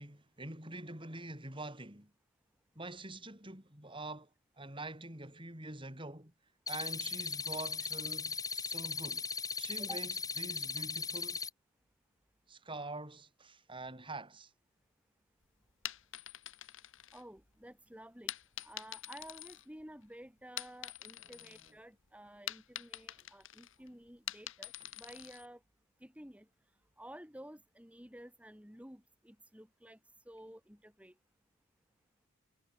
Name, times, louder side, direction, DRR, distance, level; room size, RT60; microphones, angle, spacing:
voice 1, 0.0-2.1 2.8-4.3 4.6-6.3 6.7-9.3 9.6-11.4 12.5-14.5 21.2-21.5, right 2 dB, 20° right, 5.7 m, -45 dB
sound 1, 6.7-11.5, left 5 dB, 15° left, 2.4 m, -38 dB
sound 2, 15.7-17.6 18.3-20.1 20.4-21.7 22.0-25.5, left 12 dB, 55° left, 1.7 m, -45 dB
voice 2, 17.1-18.3 18.6-25.6 26.0-26.5 27.0-30.0 30.3-31.1, right 1 dB, 5° right, 3.9 m, -52 dB
head